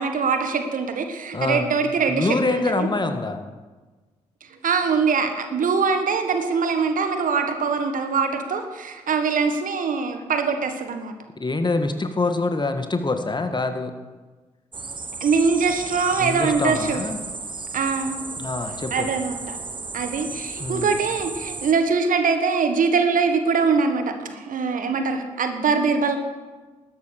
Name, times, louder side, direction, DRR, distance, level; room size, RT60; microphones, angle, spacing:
voice 1, 0.0-2.9 4.6-11.1 15.2-17.0 17.7-18.2 18.9-19.6 19.9-26.2, right 5 dB, 55° right, 7 dB, 1.7 m, -23 dB
voice 2, 1.3-1.7 2.1-3.4 11.4-14.0 16.2-17.2 18.4-19.1 20.6-20.9, left 3 dB, 30° left, 7 dB, 1.8 m, -25 dB
sound 1, 14.7-21.7, right 4 dB, 30° right, 1.3 m, -34 dB
13.0 x 9.4 x 6.6 m, 1.3 s
hypercardioid pair, 40°, 16 cm